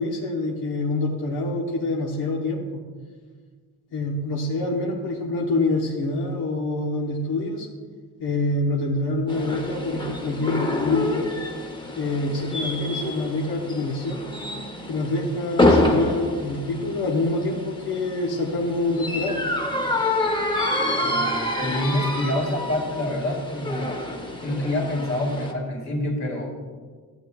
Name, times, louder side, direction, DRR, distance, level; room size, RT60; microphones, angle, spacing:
voice 1, 0.0-2.8 3.9-7.7 8.2-11.3 11.9-14.2 14.9-19.4, left 2 dB, 80° left, -2 dB, 1.1 m, -26 dB
sound 1, 9.3-25.5, left 2 dB, 15° left, 0.8 m, -27 dB
voice 2, 21.0-24.0 24.4-26.5, left 1 dB, 45° left, 0 dB, 2.1 m, -27 dB
13.5 x 8.1 x 2.3 m, 1.5 s
cardioid pair, 150°, 38 cm